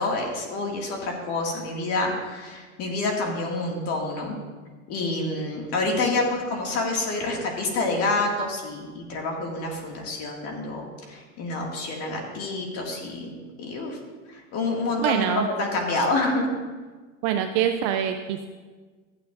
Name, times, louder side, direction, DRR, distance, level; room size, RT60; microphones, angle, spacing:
voice 1, 0.0-4.4 4.9-14.0 14.3-15.3 15.6-16.5, left 2 dB, 35° left, 0 dB, 2.2 m, -28 dB
voice 2, 15.0-15.5 17.2-18.5, right 9 dB, 30° right, 6 dB, 0.4 m, -24 dB
14.0 x 9.3 x 2.6 m, 1.4 s
hypercardioid pair, 130°, 40 cm